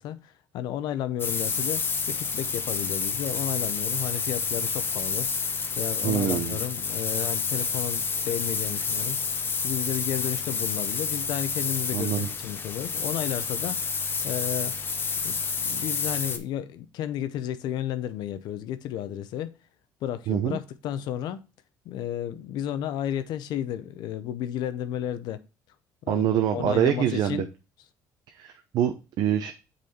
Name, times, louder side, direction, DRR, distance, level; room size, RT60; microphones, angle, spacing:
voice 1, 0.0-5.3 5.8-9.2 9.6-14.8 15.2-19.5 20.0-21.4 21.8-25.4 26.0-27.5, left 11 dB, 75° left, 0.6 m, -33 dB
sound 1, 1.2-16.4, left 5 dB, 30° left, 0.8 m, -29 dB
voice 2, 6.0-6.6 11.9-12.3 20.3-20.6 26.1-27.5 28.3-29.5, right 10 dB, 70° right, 0.7 m, -25 dB
6.4 x 4.1 x 4.2 m
cardioid pair, 125°, 7 cm